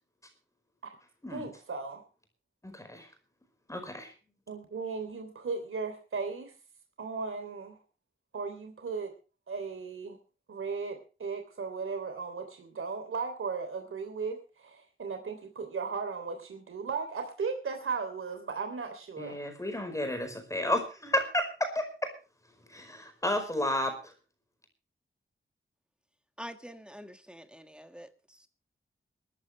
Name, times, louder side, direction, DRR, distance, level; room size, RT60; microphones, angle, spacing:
voice 1, 1.3-2.0 4.5-6.5 7.0-7.8 8.3-9.1 9.5-10.2 10.5-19.4, right 4 dB, 80° right, 3.3 m, -36 dB
voice 2, 2.6-3.1 3.7-4.1 19.2-21.5 21.7-22.1 22.7-24.1, left 1 dB, 15° left, 4.9 m, -32 dB
voice 3, 26.4-28.1, equal, 5° right, 1.6 m, -45 dB
22.5 x 13.5 x 3.3 m
wide cardioid pair, 120°, 21 cm